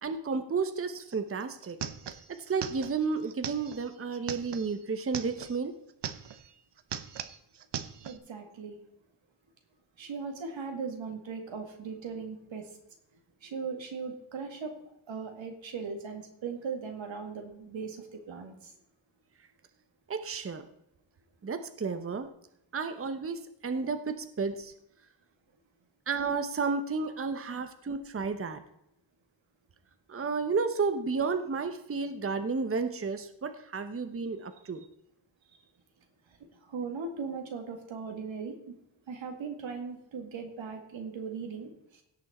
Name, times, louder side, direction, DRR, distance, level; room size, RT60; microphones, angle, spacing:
voice 1, 0.0-1.8 2.3-5.8 20.1-20.7 21.4-22.3 22.7-24.7 26.1-28.6 30.1-34.9, right 4 dB, 30° right, 9 dB, 0.9 m, -32 dB
sound 1, 1.1-1.2 1.4-5.6 5.9-6.5 6.8-8.2, right 8 dB, 65° right, 0.9 m, -40 dB
voice 2, 8.0-8.8 10.0-12.8 13.4-14.7 15.1-18.7 36.6-38.7 39.1-42.0, right 5 dB, 85° right, 3 dB, 2.1 m, -38 dB
16.5 x 6.2 x 4.3 m, 0.81 s
cardioid pair, 90°, 45 cm